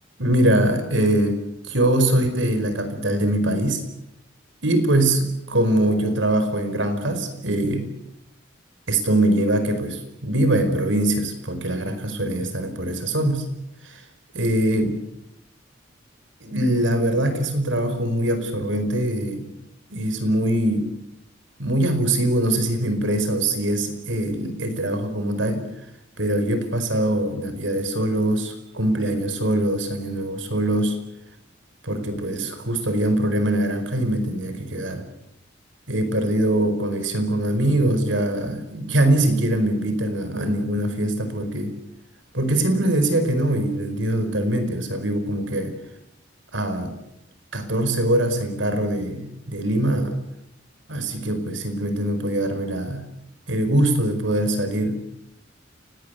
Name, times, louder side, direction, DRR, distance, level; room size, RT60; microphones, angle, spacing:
voice 1, 0.2-1.4 1.6-3.8 4.6-7.9 8.9-13.5 13.8-14.0 14.3-15.0 16.4-19.4 19.9-20.8 21.6-25.7 26.2-31.0 31.8-35.0 35.9-41.7 42.3-45.8 46.5-47.0 47.5-50.2 50.9-53.0 53.5-55.0, right 1 dB, 80° right, 9 dB, 4.9 m, -22 dB
30.0 x 19.0 x 8.1 m, 0.83 s
head